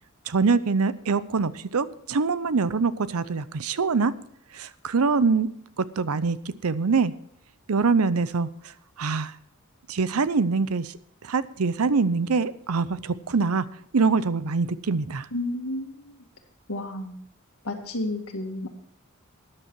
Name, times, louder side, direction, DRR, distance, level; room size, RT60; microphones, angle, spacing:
voice 1, 0.3-4.1 4.5-5.5 5.8-6.4 6.6-7.1 7.7-8.5 9.0-9.3 9.9-10.9 11.3-13.6 13.9-15.3, right 4 dB, 85° right, 16 dB, 0.6 m, -24 dB
voice 2, 15.3-16.2 16.7-17.2 17.6-18.7, left 1 dB, 85° left, 4 dB, 1.9 m, -31 dB
13.0 x 9.8 x 4.6 m, 0.72 s
head